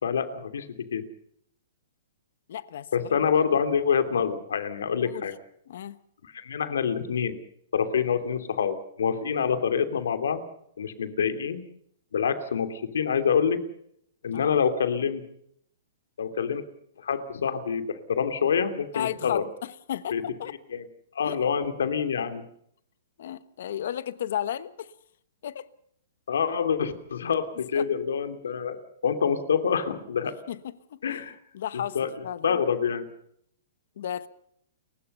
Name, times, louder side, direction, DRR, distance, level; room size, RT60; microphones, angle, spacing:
voice 1, 0.0-1.0 2.9-5.3 6.2-7.4 7.7-10.4 10.8-11.6 12.1-13.6 14.2-15.2 16.2-16.6 17.0-19.4 20.1-20.2 20.7-20.8 21.1-22.4 26.3-30.4 31.0-31.4 31.9-32.1 32.4-33.1, left 7 dB, 85° left, 2.9 m, -26 dB
voice 2, 2.5-3.2 5.0-5.3 5.7-6.0 14.3-14.6 18.9-20.5 21.2-21.4 23.2-24.9 25.4-25.7 27.7-27.9 30.5-31.2 31.5-32.6 34.0-34.3, left 10 dB, 50° left, 1.2 m, -34 dB
29.5 x 16.0 x 5.5 m
hypercardioid pair, 175°, 0 cm